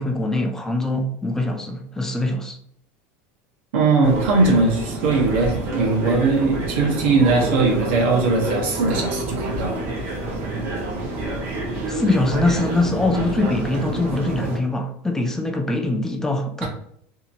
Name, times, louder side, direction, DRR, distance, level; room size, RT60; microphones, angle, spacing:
voice 1, 0.0-2.6 11.9-16.7, left 2 dB, 5° left, 0.4 m, -23 dB
voice 2, 3.7-9.8 16.6-16.7, right 3 dB, 90° right, 1.0 m, -20 dB
sound 1, 4.0-14.6, right 2 dB, 40° right, 0.8 m, -28 dB
2.8 x 2.8 x 2.5 m
supercardioid pair, 150°, 6 cm